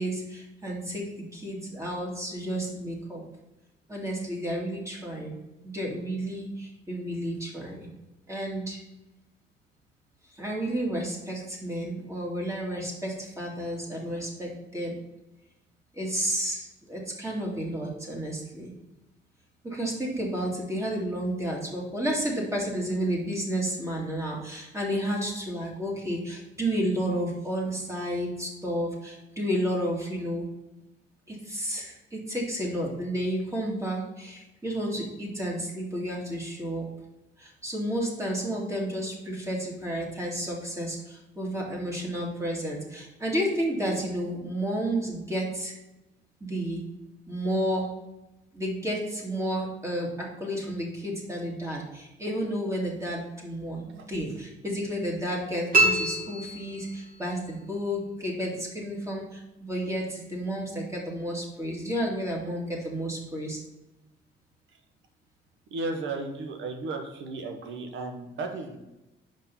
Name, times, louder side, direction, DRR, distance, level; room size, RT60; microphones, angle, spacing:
voice 1, 0.0-3.2 3.9-5.4 5.6-7.9 8.3-8.8 10.3-15.0 15.9-18.7 19.6-30.5 31.3-36.8 37.4-45.7 46.4-46.8 47.3-47.9 48.5-63.6, equal, 15° right, -3 dB, 2.2 m, -31 dB
sound 1, 55.7-57.3, right 1 dB, 45° right, 2.4 m, -25 dB
voice 2, 65.7-68.8, right 3 dB, 75° right, 5 dB, 1.1 m, -34 dB
5.3 x 5.1 x 5.5 m, 0.97 s
cardioid pair, 90°, 20 cm